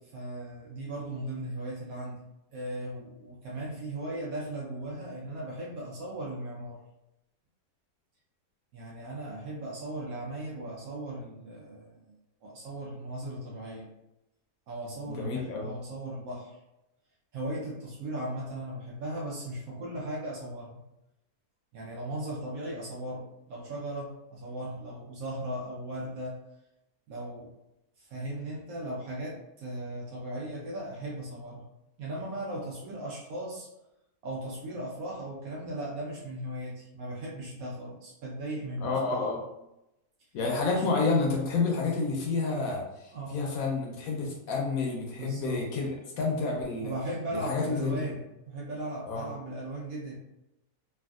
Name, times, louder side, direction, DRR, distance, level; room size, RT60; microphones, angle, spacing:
voice 1, 0.1-2.2 2.5-6.8 8.7-12.1 12.4-13.9 14.7-16.6 17.3-20.8 21.7-26.4 27.1-27.5 28.0-31.6 32.0-33.7 34.2-39.3 40.7-40.8 43.1-43.4 45.2-45.6 46.8-50.2, right 1 dB, 70° right, -4 dB, 1.0 m, -37 dB
voice 2, 15.1-15.7 38.8-39.4 40.3-45.9 46.2-46.9 47.3-48.1 49.1-49.3, left 3 dB, 70° left, -1 dB, 1.0 m, -29 dB
3.4 x 2.4 x 2.3 m, 0.90 s
omnidirectional pair, 1.6 m